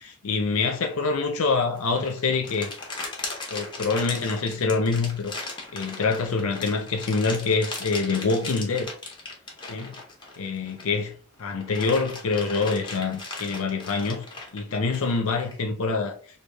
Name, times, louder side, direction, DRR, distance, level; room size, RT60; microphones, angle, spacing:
voice 1, 0.0-2.7 3.5-5.3 5.7-8.9 9.7-10.0 10.4-14.3 14.5-16.1, left 4 dB, 70° left, 0.5 m, -25 dB
sound 1, 1.7-11.0 11.4-15.6, left 3 dB, 20° left, 0.8 m, -37 dB
3.3 x 2.3 x 3.3 m
head